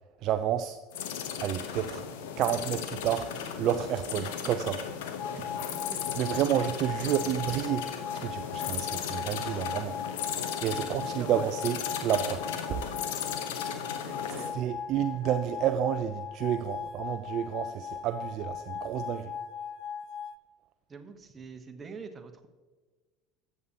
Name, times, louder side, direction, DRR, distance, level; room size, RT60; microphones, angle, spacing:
voice 1, 0.2-0.8 1.4-2.0 2.4-4.8 6.2-7.9 8.1-9.9 10.6-12.9 14.5-19.3, right 11 dB, 50° right, 10 dB, 0.4 m, -30 dB
sound 1, 0.9-14.5, left 8 dB, 65° left, 0.9 m, -36 dB
sound 2, 5.2-20.3, left 7 dB, 50° left, 0.4 m, -39 dB
voice 2, 10.7-11.5 14.0-14.6 20.9-22.5, right 5 dB, 25° right, 7 dB, 1.0 m, -45 dB
13.5 x 8.3 x 2.8 m, 1.3 s
figure-of-eight pair, 70°, 0 cm